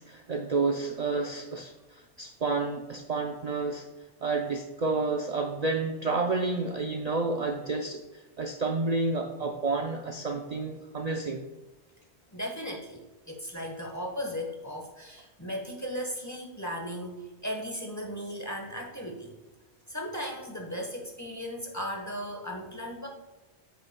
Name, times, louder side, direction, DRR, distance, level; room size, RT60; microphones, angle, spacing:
voice 1, 0.0-3.8 4.2-8.0 8.4-11.4, right 3 dB, 45° right, 3 dB, 0.6 m, -30 dB
voice 2, 12.3-13.0 13.3-19.3 19.9-23.1, equal, 15° left, 0 dB, 1.1 m, -36 dB
9.2 x 8.2 x 2.2 m, 1.2 s
omnidirectional pair, 1.2 m